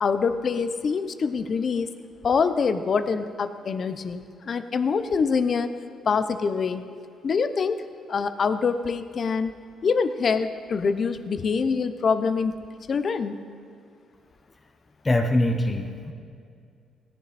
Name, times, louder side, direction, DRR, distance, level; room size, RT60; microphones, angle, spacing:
voice 1, 0.0-1.9 2.2-5.7 6.1-6.8 7.2-7.8 8.1-9.5 9.8-12.6 12.9-13.4, left 5 dB, 50° left, 11 dB, 0.7 m, -25 dB
voice 2, 15.0-16.1, left 1 dB, 20° left, 4 dB, 1.0 m, -23 dB
17.0 x 10.5 x 4.2 m, 2.3 s
cardioid pair, 90°, 0 cm